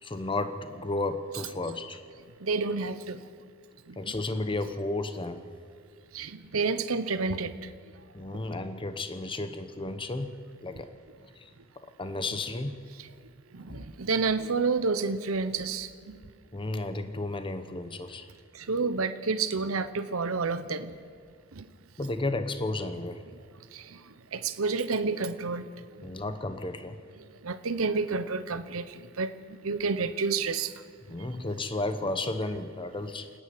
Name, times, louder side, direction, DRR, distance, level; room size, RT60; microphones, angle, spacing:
voice 1, 0.0-2.0 4.0-5.5 8.1-10.9 11.3-11.5 11.8-12.8 13.7-13.9 16.5-18.3 22.0-23.2 26.0-27.0 31.1-33.3, left 2 dB, 25° left, 9 dB, 0.9 m, -33 dB
voice 2, 2.4-3.2 3.9-4.0 6.1-7.6 13.5-16.2 18.5-20.9 21.5-21.7 23.7-24.0 24.3-25.6 27.4-29.3 29.6-30.7, right 4 dB, 80° right, 11 dB, 0.9 m, -29 dB
28.5 x 9.9 x 9.5 m, 2.2 s
head